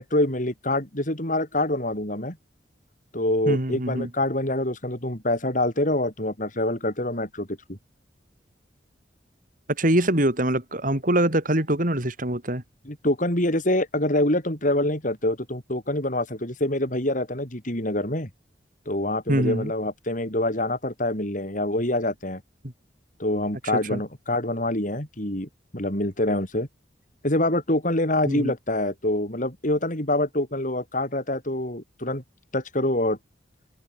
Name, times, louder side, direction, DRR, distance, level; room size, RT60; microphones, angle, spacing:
voice 1, 0.0-2.4 3.1-7.8 12.8-18.3 18.8-22.4 23.2-26.7 27.2-32.2 32.5-33.2, left 1 dB, 45° left, 6.8 m, -25 dB
voice 2, 3.5-4.1 9.8-12.6 19.3-19.7 23.7-24.0 28.3-28.5, right 1 dB, 50° right, 5.2 m, -24 dB
open air
head